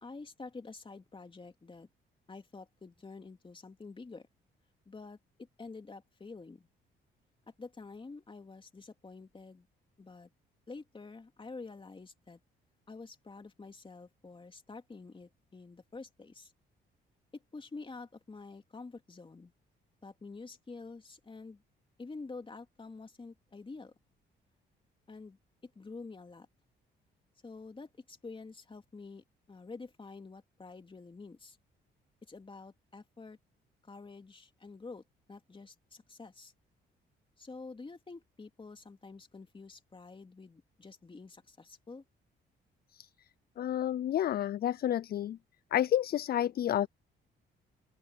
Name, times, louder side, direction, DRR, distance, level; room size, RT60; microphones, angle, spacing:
voice 1, 0.0-1.9 2.3-4.3 4.9-6.7 7.5-9.7 10.0-10.3 10.7-12.4 12.9-16.5 17.3-19.5 20.0-21.6 22.0-23.9 25.1-26.5 27.4-31.6 32.2-33.4 33.8-35.0 35.3-36.5 37.4-42.0, left 3 dB, 25° left, 2.9 m, -48 dB
voice 2, 43.6-45.4 45.7-46.9, left 11 dB, 50° left, 0.4 m, -30 dB
open air
cardioid pair, 90°, 20 cm